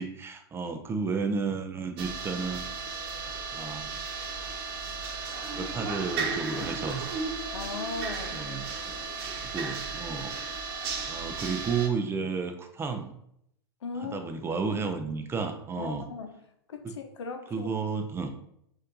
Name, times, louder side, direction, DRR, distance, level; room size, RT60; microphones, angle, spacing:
voice 1, 0.0-2.7 3.5-3.9 5.5-7.0 8.3-10.3 11.0-13.1 14.0-16.0 16.8-16.9 17.5-18.3, right 5 dB, 15° right, 6 dB, 0.4 m, -32 dB
sound 1, 2.0-11.9, right 4 dB, 55° right, 0.9 m, -35 dB
voice 2, 7.5-8.4 13.8-14.2 15.7-16.3 16.7-17.7, left 4 dB, 85° left, 6 dB, 0.7 m, -37 dB
4.2 x 2.5 x 3.8 m, 0.74 s
hypercardioid pair, 115°, 14 cm